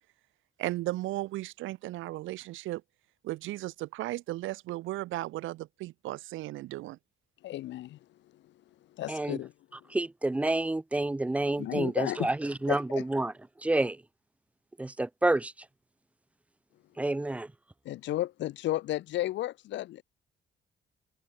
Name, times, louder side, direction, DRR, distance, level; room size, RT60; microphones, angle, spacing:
voice 1, 0.6-2.8 3.2-7.0, right 17 dB, 80° right, 0.4 m, -35 dB
voice 2, 7.4-8.0 9.0-9.5 11.6-12.3 12.7-13.0 17.9-20.0, left 14 dB, 70° left, 0.4 m, -33 dB
voice 3, 9.1-9.4 9.9-14.0 14.8-15.5 17.0-17.5, right 2 dB, 5° right, 0.3 m, -29 dB
cardioid pair, 90°, 20 cm